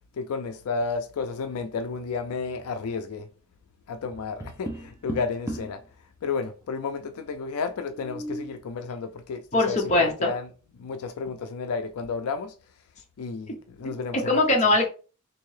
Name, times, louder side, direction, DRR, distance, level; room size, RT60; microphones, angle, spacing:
voice 1, 0.1-3.3 3.9-5.8 6.2-10.5 10.8-12.5 13.2-14.4, left 4 dB, 80° left, 0.4 m, -32 dB
Tap, 4.1-5.8 7.8-8.6, right 1 dB, 15° right, 0.4 m, -36 dB
voice 2, 9.5-10.3 13.8-13.9 14.3-14.9, left 2 dB, 30° left, 0.7 m, -21 dB
3.5 x 2.7 x 3.2 m
head